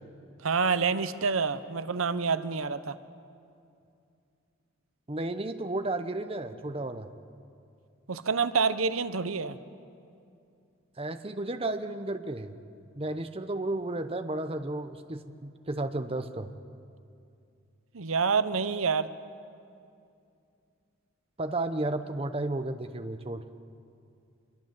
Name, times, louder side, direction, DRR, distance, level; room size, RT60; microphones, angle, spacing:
voice 1, 0.4-3.0 8.1-9.6 17.9-19.1, right 5 dB, 90° right, 13 dB, 0.9 m, -27 dB
voice 2, 5.1-7.1 11.0-12.6 13.0-16.5 21.4-23.4, right 2 dB, 30° right, 8 dB, 0.9 m, -33 dB
25.5 x 22.5 x 7.7 m, 2.5 s
head